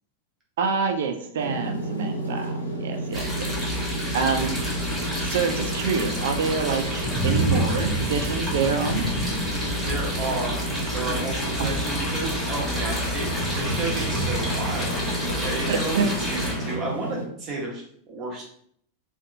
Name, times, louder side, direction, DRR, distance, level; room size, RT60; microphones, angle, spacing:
voice 1, 0.6-3.5 4.1-4.6 5.1-9.1 11.6-11.7 15.7-16.1 16.3-16.6, right 5 dB, 60° right, 5 dB, 0.3 m, -27 dB
sound 1, 1.4-17.2, right 1 dB, 80° left, 0.5 m, -32 dB
sound 2, 3.1-16.5, equal, 5° right, 0.8 m, -31 dB
sound 3, 4.5-16.7, equal, 35° left, 0.7 m, -32 dB
voice 2, 9.5-15.0 15.4-18.4, right 2 dB, 30° right, -3 dB, 0.9 m, -32 dB
2.7 x 2.1 x 2.5 m, 0.66 s
figure-of-eight pair, 90°, 0 cm